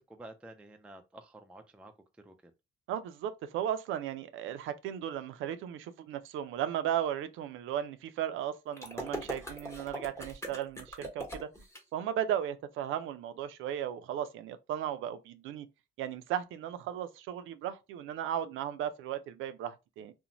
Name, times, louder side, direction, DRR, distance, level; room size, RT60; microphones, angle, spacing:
voice 1, 0.0-1.9 2.2-2.3, right 2 dB, 5° right, 0.3 m, -50 dB
voice 2, 2.9-11.6 11.9-15.7 16.0-20.1, right 10 dB, 85° right, 0.4 m, -36 dB
sound 1, 8.8-11.8, equal, 10° left, 1.0 m, -41 dB
2.6 x 2.1 x 2.9 m
cardioid pair, 90°, 20 cm